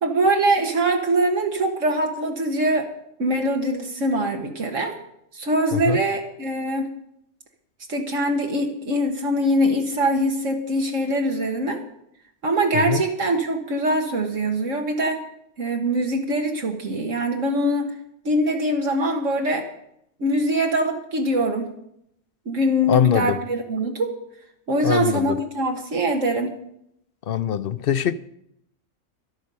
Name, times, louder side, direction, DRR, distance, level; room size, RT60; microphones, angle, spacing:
voice 1, 0.0-2.9 3.2-5.0 5.3-6.9 7.9-11.8 12.4-15.2 15.6-17.9 18.2-19.6 20.2-21.7 22.4-24.1 24.7-26.5, right 1 dB, 65° right, 1.7 m, -23 dB
voice 2, 22.9-23.4 24.8-25.4 27.3-28.1, left 9 dB, 55° left, 0.7 m, -22 dB
13.0 x 11.5 x 5.4 m
omnidirectional pair, 1.4 m